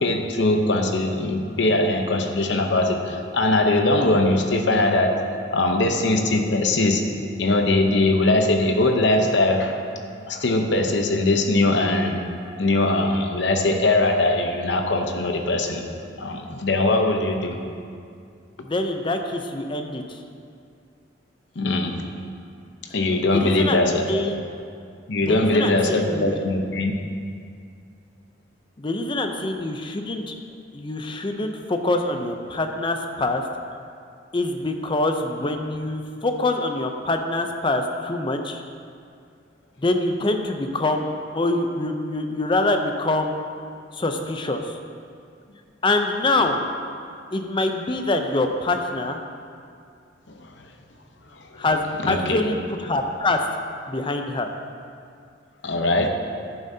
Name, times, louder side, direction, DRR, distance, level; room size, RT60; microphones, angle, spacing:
voice 1, 0.0-5.2 5.5-7.0 7.4-9.8 10.3-12.2 12.6-15.8 16.2-17.6 21.6-21.9 22.9-24.1 25.1-26.9 50.4-50.5 51.3-51.4 52.0-52.4 55.6-56.1, left 2 dB, 65° left, 4 dB, 0.8 m, -21 dB
voice 2, 18.6-20.2 23.3-24.4 25.2-26.3 28.8-30.3 30.7-33.4 34.3-38.6 39.8-43.4 43.9-44.8 45.8-46.6 47.3-49.2 51.6-53.5 53.9-54.5, left 2 dB, 25° left, 5 dB, 0.6 m, -25 dB
11.0 x 9.2 x 2.8 m, 2.3 s
head